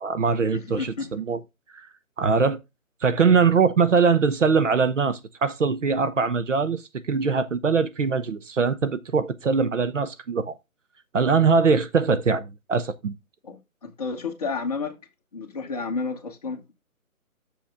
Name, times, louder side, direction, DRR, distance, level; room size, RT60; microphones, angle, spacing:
voice 1, 0.0-1.4 2.2-2.6 3.0-10.6 11.1-13.1, right 5 dB, 60° right, 0.9 m, -22 dB
voice 2, 0.5-1.1 13.4-15.0 15.3-16.7, left 4 dB, 25° left, 1.2 m, -31 dB
7.5 x 7.0 x 3.5 m
figure-of-eight pair, 160°, 43 cm